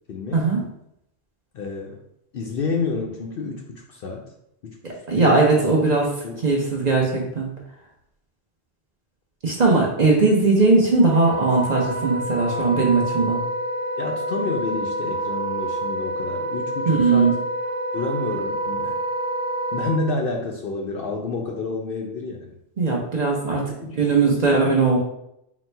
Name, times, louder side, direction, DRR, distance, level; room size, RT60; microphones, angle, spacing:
voice 1, 0.1-0.4 1.5-2.0 2.3-4.2 4.6-4.8 5.2-5.4 6.2-6.4 14.0-17.4 17.9-19.0 19.7-22.5 23.5-24.0 24.2-24.4, left 3 dB, 60° left, 1 dB, 0.6 m, -29 dB
voice 2, 4.8-6.1 6.4-7.5 9.4-13.4 16.9-17.3 22.8-23.6 24.0-25.0, right 3 dB, 45° right, -2 dB, 0.7 m, -19 dB
Wind instrument woodwind instrument, 11.0-20.0, right 1 dB, 80° right, 1.0 m, -27 dB
4.0 x 2.1 x 4.4 m, 0.79 s
omnidirectional pair, 1.2 m